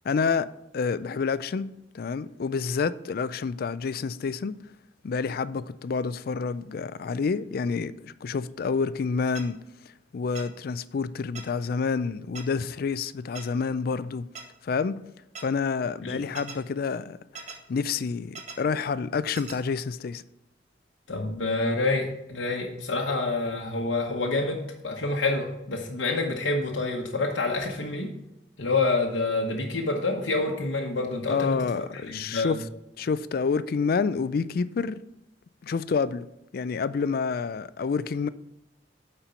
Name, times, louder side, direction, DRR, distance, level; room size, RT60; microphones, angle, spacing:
voice 1, 0.0-0.5 0.7-4.6 5.0-9.6 10.1-14.3 14.6-15.0 15.4-17.2 17.7-20.2 31.3-32.6 33.0-35.0 35.6-36.3 36.5-38.3, left 5 dB, 55° left, 0.3 m, -28 dB
sound 1, 9.4-9.5 10.4-10.5 11.4-11.5 12.4-12.5 13.4-13.5 14.4-14.5 15.4-15.5 16.4-16.6 17.4-17.6 18.4-18.6 19.4-19.6, right 5 dB, 40° right, 1.0 m, -39 dB
voice 2, 21.1-28.1 28.6-31.6 32.1-32.6, left 3 dB, 80° left, 1.0 m, -27 dB
8.9 x 4.4 x 5.6 m
head